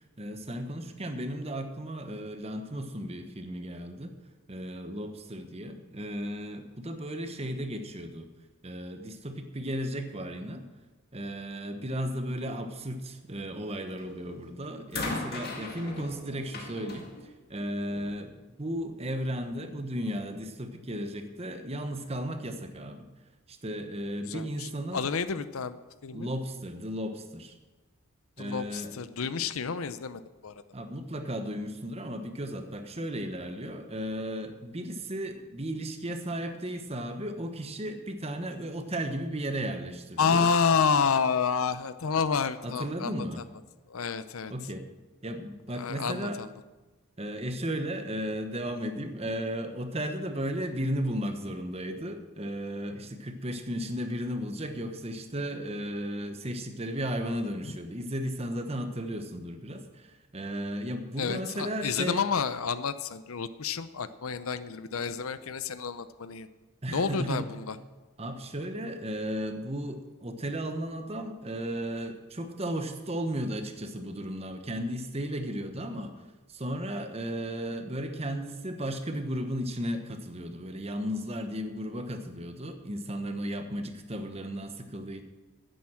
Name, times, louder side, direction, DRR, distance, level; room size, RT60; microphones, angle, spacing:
voice 1, 0.2-4.1 4.5-8.3 8.6-10.6 11.1-17.1 17.5-23.1 23.5-25.0 26.1-27.5 28.4-28.9 30.7-40.5 42.6-43.4 44.5-44.8 45.2-46.4 47.2-62.2 66.8-67.5 68.2-76.1 76.5-85.2, equal, 30° right, 7 dB, 1.0 m, -35 dB
sound 1, 14.0-14.3 14.9-18.2 19.2-19.3, left 2 dB, 45° left, 2.0 m, -38 dB
voice 2, 24.2-25.8 26.0-26.3 28.4-30.6 40.2-43.3 43.9-44.5 45.7-46.5 57.6-57.7 61.2-66.5 66.9-67.8, left 5 dB, 75° left, 14 dB, 0.6 m, -29 dB
11.0 x 9.3 x 7.6 m, 1.2 s
head